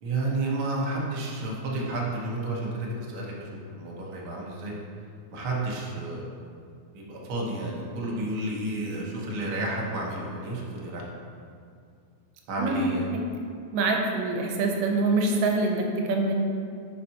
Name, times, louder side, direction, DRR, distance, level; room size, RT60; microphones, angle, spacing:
voice 1, 0.0-4.8 5.3-6.3 6.9-11.0 12.5-13.1, right 2 dB, 60° right, -4 dB, 1.4 m, -31 dB
voice 2, 12.6-13.2 13.7-16.3, right 3 dB, 85° right, 1 dB, 2.4 m, -25 dB
9.9 x 5.8 x 2.9 m, 2.3 s
omnidirectional pair, 3.7 m